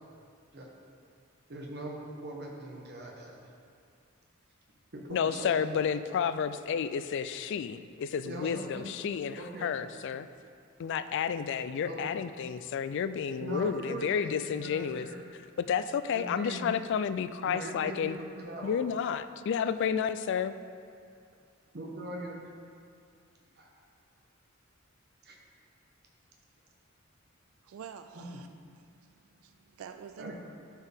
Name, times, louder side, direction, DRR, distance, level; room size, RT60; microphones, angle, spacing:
voice 1, 1.5-3.5 4.9-5.8 8.2-8.9 9.4-9.7 11.8-12.1 13.4-15.2 16.1-16.6 17.4-18.7 21.7-22.4 23.6-23.8 25.2-25.4 28.1-28.2 30.2-30.3, right 1 dB, 55° right, -1 dB, 1.1 m, -41 dB
voice 2, 5.1-10.3 10.8-15.1 15.6-18.2 18.6-20.6, left 7 dB, 60° left, 12 dB, 0.3 m, -31 dB
voice 3, 27.6-28.5 28.9-29.1 29.4-30.3, right 7 dB, 85° right, 8 dB, 0.3 m, -47 dB
12.0 x 4.6 x 3.5 m, 2.3 s
head